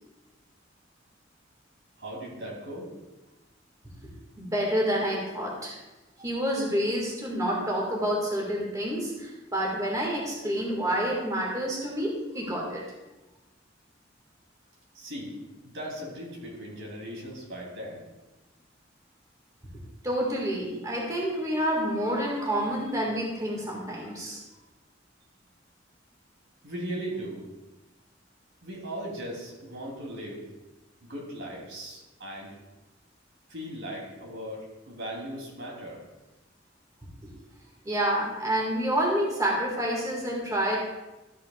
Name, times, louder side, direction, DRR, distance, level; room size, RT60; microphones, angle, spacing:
voice 1, 2.0-2.9 14.9-15.4 15.6-18.0 26.6-27.5 28.6-30.4 31.0-32.5 33.5-36.0, right 1 dB, 80° right, -2 dB, 3.0 m, -38 dB
voice 2, 4.4-5.8 6.2-12.8 20.0-24.4 37.8-40.8, equal, 20° right, -3 dB, 1.8 m, -28 dB
12.5 x 8.1 x 2.4 m, 1.0 s
head